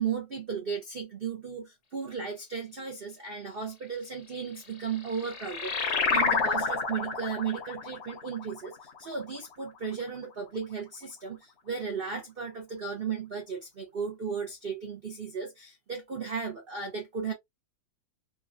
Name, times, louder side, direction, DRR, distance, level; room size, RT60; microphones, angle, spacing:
voice 1, 0.0-17.3, right 6 dB, 70° right, 0.5 m, -35 dB
sound 1, 4.7-9.8, left 4 dB, 55° left, 0.8 m, -30 dB
3.5 x 2.3 x 2.4 m
omnidirectional pair, 2.0 m